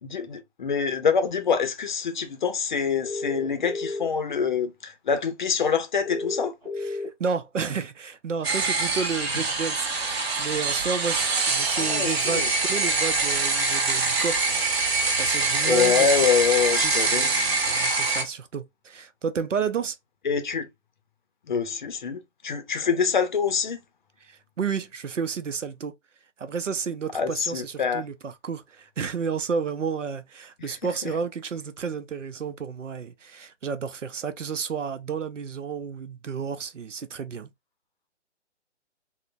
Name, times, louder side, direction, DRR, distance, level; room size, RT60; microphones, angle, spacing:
voice 1, 0.0-6.5 11.8-12.5 15.6-17.3 20.2-20.7 21.5-23.8 27.1-28.0 30.6-30.7 31.0-31.1, left 6 dB, 40° left, 0.6 m, -25 dB
sound 1, 3.0-4.0 6.1-7.1, left 3 dB, 5° right, 0.7 m, -31 dB
voice 2, 6.8-14.8 15.2-16.1 16.8-17.3 17.7-20.0 24.2-25.9 26.4-37.5, right 5 dB, 90° right, 0.6 m, -31 dB
sound 2, 8.4-18.2, right 3 dB, 55° right, 1.0 m, -24 dB
3.7 x 2.1 x 2.5 m
figure-of-eight pair, 145°, 36 cm